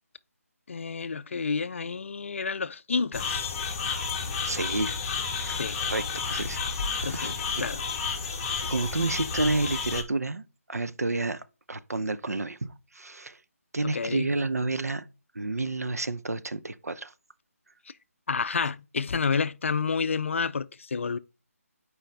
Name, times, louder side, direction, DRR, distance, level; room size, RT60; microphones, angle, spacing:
voice 1, 0.7-3.6 5.5-5.8 7.0-7.8 13.8-14.3 18.3-21.2, left 5 dB, 55° left, 0.4 m, -30 dB
sound 1, 3.1-10.0, left 5 dB, 20° left, 1.0 m, -31 dB
voice 2, 4.4-5.0 5.3-5.6 5.9-6.6 7.0-7.6 8.6-13.4 13.7-15.0 15.3-17.1, right 2 dB, 85° right, 0.7 m, -30 dB
7.6 x 4.9 x 3.3 m
figure-of-eight pair, 160°, 8 cm